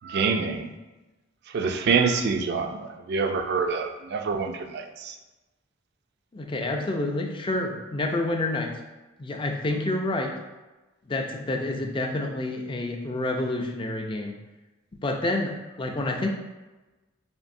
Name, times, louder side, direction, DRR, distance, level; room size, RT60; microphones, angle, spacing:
voice 1, 0.0-0.7 1.5-5.1, right 5 dB, 55° right, 6 dB, 0.3 m, -26 dB
voice 2, 6.3-8.7 9.2-10.3 11.1-14.3 15.0-15.5 15.8-16.3, left 2 dB, 25° left, 2 dB, 0.4 m, -28 dB
5.1 x 2.6 x 2.6 m, 1.1 s
head